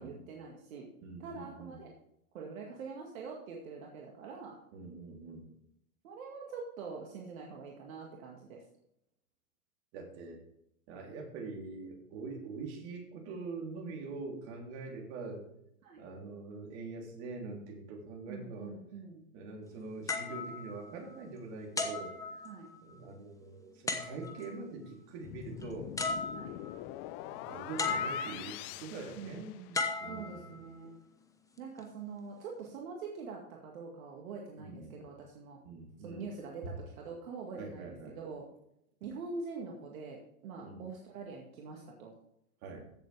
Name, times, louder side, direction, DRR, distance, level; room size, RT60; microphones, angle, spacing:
voice 1, 0.0-0.9 1.2-1.9 2.3-4.6 6.0-8.6 15.8-16.0 18.3-19.3 22.4-22.7 26.3-26.6 29.1-29.8 30.1-30.9 31.6-35.6 36.0-38.5 39.0-42.1, right 4 dB, 65° right, 0 dB, 2.1 m, -44 dB
voice 2, 1.0-1.8 4.7-5.5 9.9-10.4 10.9-15.4 16.0-18.8 19.3-22.1 22.8-25.9 27.3-29.6 30.0-30.5 34.6-35.0 35.6-36.3 37.6-38.2 40.6-40.8 42.6-42.9, right 3 dB, 45° right, 0 dB, 3.5 m, -44 dB
sound 1, 20.1-21.3 21.8-22.9 23.9-24.6 25.6-25.7 26.0-26.8 27.8-28.6 29.7-30.9 31.6-31.8, left 3 dB, 5° left, 1.0 m, -36 dB
sound 2, 25.2-30.0, left 15 dB, 30° left, 0.5 m, -44 dB
15.5 x 7.2 x 3.5 m, 0.77 s
hypercardioid pair, 125°, 44 cm